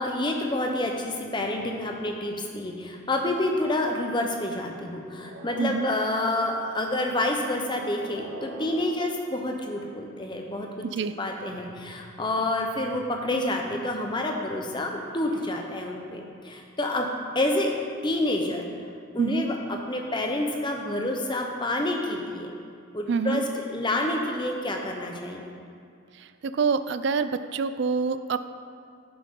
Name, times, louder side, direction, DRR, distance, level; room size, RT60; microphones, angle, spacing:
voice 1, 0.0-10.9 11.2-17.1 17.3-17.7 18.0-18.7 19.1-22.5 22.9-25.5, left 1 dB, 20° left, 2 dB, 0.8 m, -28 dB
sound 1, 5.0-10.4 14.7-16.4, right 1 dB, 75° right, 0.7 m, -46 dB
voice 2, 23.1-23.4 26.1-28.4, right 5 dB, 55° right, 11 dB, 0.3 m, -26 dB
10.5 x 7.8 x 3.7 m, 2.3 s
head